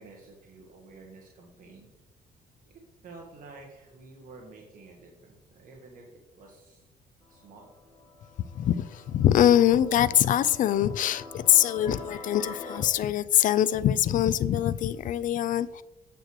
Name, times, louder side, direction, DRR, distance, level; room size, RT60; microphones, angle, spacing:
voice 1, 0.0-1.9 2.6-6.9 7.3-7.7, right 3 dB, 55° right, 1.4 m, -50 dB
sound 1, 7.2-12.8, left 4 dB, 30° left, 1.5 m, -46 dB
voice 2, 8.5-15.8, left 11 dB, 50° left, 0.4 m, -23 dB
9.0 x 7.6 x 3.0 m
cardioid pair, 110°, 17 cm